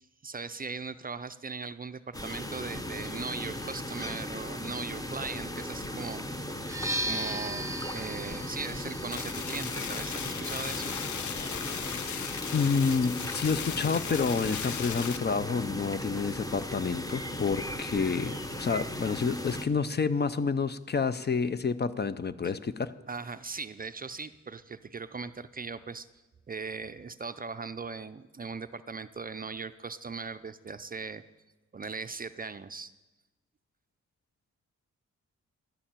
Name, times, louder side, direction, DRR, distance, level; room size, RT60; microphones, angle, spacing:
voice 1, 0.0-6.2 7.0-10.9 23.1-26.1 26.5-31.2 31.7-32.9, right 4 dB, 30° right, 12 dB, 0.4 m, -39 dB
sound 1, 2.1-19.6, left 1 dB, 10° left, 0.9 m, -37 dB
sound 2, 6.6-14.4, right 1 dB, 10° right, 0.9 m, -40 dB
sound 3, 9.1-15.2, left 8 dB, 75° left, 0.7 m, -37 dB
voice 2, 12.5-22.9, left 5 dB, 35° left, 14 dB, 0.5 m, -29 dB
11.5 x 7.0 x 8.9 m, 1.1 s
wide cardioid pair, 105°, 30 cm